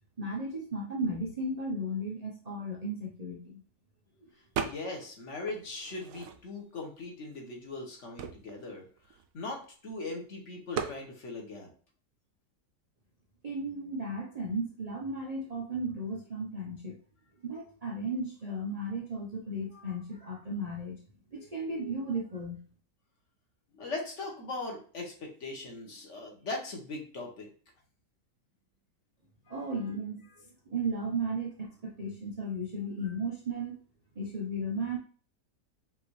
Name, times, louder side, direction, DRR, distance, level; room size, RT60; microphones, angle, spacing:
voice 1, 0.2-3.6 4.2-4.3 13.4-17.0 17.4-21.0 21.3-22.6 29.5-30.2 30.7-33.8 34.2-35.0, right 1 dB, 90° right, -1 dB, 0.3 m, -35 dB
voice 2, 4.6-8.8 9.3-11.7 23.7-27.5 29.5-29.6, left 3 dB, 50° left, 1 dB, 1.3 m, -39 dB
sound 1, 4.6-5.1 5.5-6.7 7.4-7.5 7.7-9.9 10.7-11.0, right 7 dB, 70° right, 0.8 m, -38 dB
5.4 x 2.8 x 3.1 m, 0.41 s
omnidirectional pair, 1.8 m